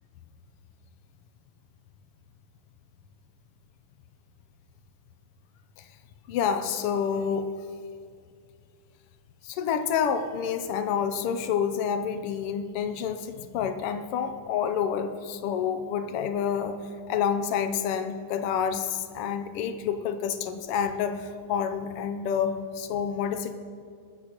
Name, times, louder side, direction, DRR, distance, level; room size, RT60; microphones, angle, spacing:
voice 1, 6.3-7.5 9.4-23.5, left 7 dB, 85° left, 9 dB, 1.2 m, -28 dB
21.0 x 14.0 x 3.0 m, 2.2 s
omnidirectional pair, 3.3 m